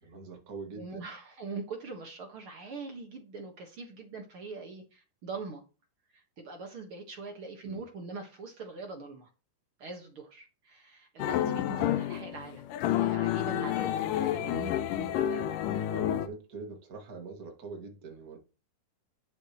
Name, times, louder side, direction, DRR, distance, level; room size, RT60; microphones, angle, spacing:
voice 1, 0.0-1.0 7.6-7.8 15.9-18.4, right 4 dB, 30° right, 1.8 m, -43 dB
voice 2, 0.7-5.6 6.1-9.3 9.8-15.5, right 4 dB, 50° right, 1.8 m, -42 dB
sound 1, 11.2-16.3, left 12 dB, 75° left, 2.2 m, -30 dB
10.0 x 8.3 x 3.0 m
omnidirectional pair, 4.2 m